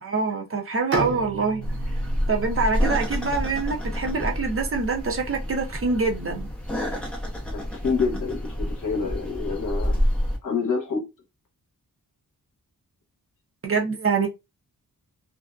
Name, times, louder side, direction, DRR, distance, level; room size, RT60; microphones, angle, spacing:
voice 1, 0.0-1.6 1.9-2.0 2.3-6.5 13.6-14.3, right 4 dB, 40° right, 0.5 m, -25 dB
Bowed string instrument, 0.9-4.5, right 4 dB, 85° right, 0.7 m, -35 dB
sound 1, 1.6-10.4, equal, 5° left, 0.7 m, -28 dB
voice 2, 7.5-10.0 10.4-11.0, left 5 dB, 60° left, 0.9 m, -27 dB
2.5 x 2.2 x 2.3 m
wide cardioid pair, 135°, 36 cm